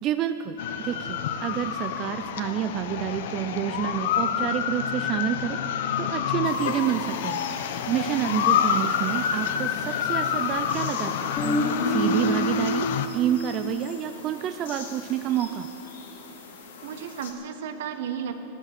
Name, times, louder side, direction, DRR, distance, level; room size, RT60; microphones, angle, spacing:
voice 1, 0.0-5.6 6.0-7.4 7.9-11.3 11.8-12.9 13.1-15.7, right 11 dB, 30° right, 9 dB, 0.4 m, -28 dB
sound 1, 0.6-13.1, left 8 dB, 65° left, 0.9 m, -28 dB
sound 2, 6.4-17.3, left 5 dB, 85° left, 2.3 m, -45 dB
voice 2, 8.1-8.5 16.8-18.3, right 7 dB, 70° right, 7 dB, 1.3 m, -33 dB
Guitar, 11.4-15.3, equal, 25° left, 2.2 m, -29 dB
15.0 x 13.0 x 6.6 m, 2.9 s
supercardioid pair, 155°, 0 cm